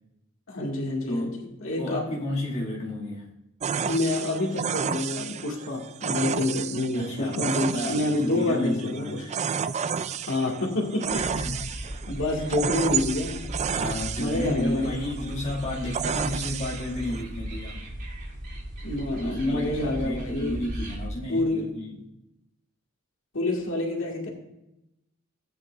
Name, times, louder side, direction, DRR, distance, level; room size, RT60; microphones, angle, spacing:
voice 1, 0.5-2.0 3.8-9.2 10.3-11.4 12.1-13.4 14.2-15.0 18.8-20.6 21.3-21.7 23.3-24.3, left 2 dB, 80° left, 0 dB, 1.8 m, -28 dB
voice 2, 1.1-1.5 1.8-3.3 6.9-9.4 11.1-11.6 13.7-17.8 19.2-22.0, left 1 dB, 35° left, -4 dB, 2.1 m, -32 dB
sound 1, 3.6-17.2, right 7 dB, 35° right, 0.3 m, -32 dB
sound 2, 11.0-21.1, equal, 55° right, 2.9 m, -37 dB
16.0 x 8.5 x 2.4 m, 0.91 s
head